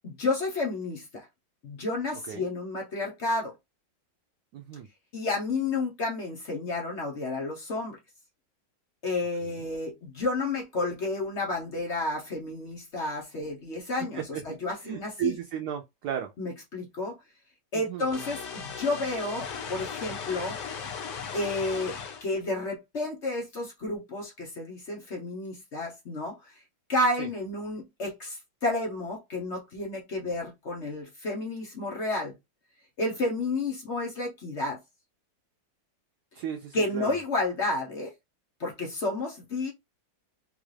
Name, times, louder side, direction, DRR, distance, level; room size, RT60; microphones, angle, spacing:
voice 1, 0.0-1.3 1.6-3.5 5.1-8.0 9.0-15.3 16.4-17.2 17.7-20.6 21.3-26.6 26.9-32.3 33.0-34.8 36.7-38.1 38.6-39.7, left 2 dB, 50° left, 0.9 m, -31 dB
voice 2, 4.5-4.9 14.1-14.4 14.8-16.3 17.9-18.1 27.2-27.3 36.3-37.1, right 9 dB, 70° right, 1.0 m, -34 dB
sound 1, 18.1-22.3, left 6 dB, 70° left, 1.3 m, -37 dB
4.0 x 2.4 x 3.1 m
omnidirectional pair, 2.0 m